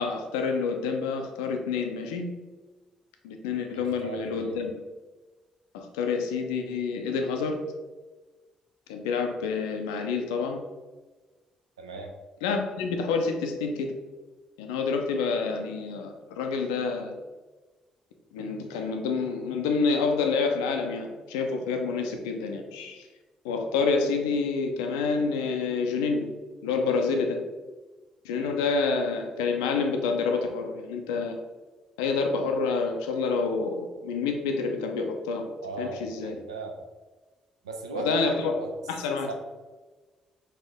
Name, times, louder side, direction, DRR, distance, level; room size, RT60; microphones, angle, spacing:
voice 1, 0.0-2.3 3.2-4.7 5.7-7.6 8.9-10.6 12.4-13.9 14.6-17.2 18.3-23.1 23.4-26.3 26.6-27.4 28.2-31.4 32.0-35.5 35.8-36.4 37.9-38.5 38.9-39.3, left 4 dB, 75° left, 4 dB, 0.4 m, -28 dB
voice 2, 3.7-4.6 11.8-12.1 35.6-36.7 37.6-38.7 39.3-39.4, right 3 dB, 85° right, 3 dB, 0.4 m, -37 dB
4.3 x 2.6 x 3.4 m, 1.3 s
figure-of-eight pair, 40°, 3 cm